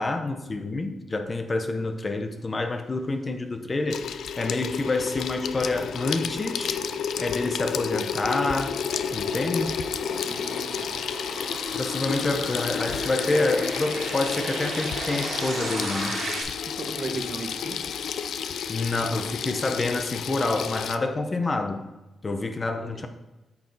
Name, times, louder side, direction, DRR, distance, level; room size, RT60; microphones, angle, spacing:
voice 1, 0.0-4.0 4.4-6.8 7.2-8.8 9.1-9.8 11.7-16.2 18.7-21.9 22.2-23.1, left 2 dB, 30° left, 7 dB, 0.8 m, -27 dB
sound 1, 3.2-16.4, right 3 dB, 75° right, 3.0 m, -38 dB
Water tap faucet / Sink (filling or washing), 3.9-21.0, left 7 dB, 80° left, 0.4 m, -31 dB
voice 2, 10.2-10.9 16.7-17.8 22.3-22.4 22.9-23.0, right 3 dB, 50° right, 3 dB, 1.6 m, -36 dB
8.8 x 6.5 x 4.0 m, 1.1 s
cardioid pair, 100°, 0 cm